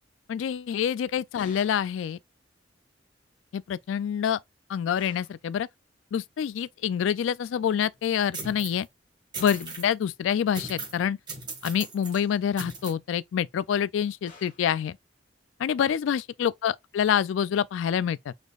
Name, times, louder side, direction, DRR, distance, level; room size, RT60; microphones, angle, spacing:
voice 1, 0.3-2.2 3.5-4.4 4.7-5.7 6.1-8.9 9.4-11.2 11.6-15.0 15.6-18.3, left 8 dB, 90° left, 0.3 m, -27 dB
sound 1, 1.4-1.9 5.0-5.4 9.4-9.8 14.3-14.7, left 3 dB, 45° left, 1.7 m, -51 dB
sound 2, 8.3-8.8 9.3-9.9 10.5-11.0 11.3-12.2 12.6-12.9, right 3 dB, 25° right, 2.0 m, -38 dB
4.9 x 4.2 x 2.4 m
head